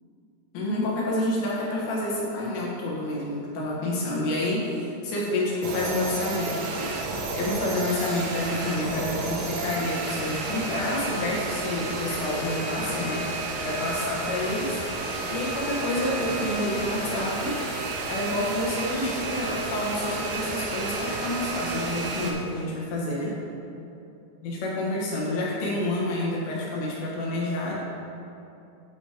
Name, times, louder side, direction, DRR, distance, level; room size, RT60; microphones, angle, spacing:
voice 1, 0.5-13.3 13.6-17.6 18.1-23.4 24.4-27.7, left 1 dB, 90° left, -5 dB, 3.7 m, -29 dB
sound 1, 5.6-22.3, right 2 dB, 85° right, 3.1 m, -31 dB
12.0 x 5.0 x 3.0 m, 2.7 s
omnidirectional pair, 4.9 m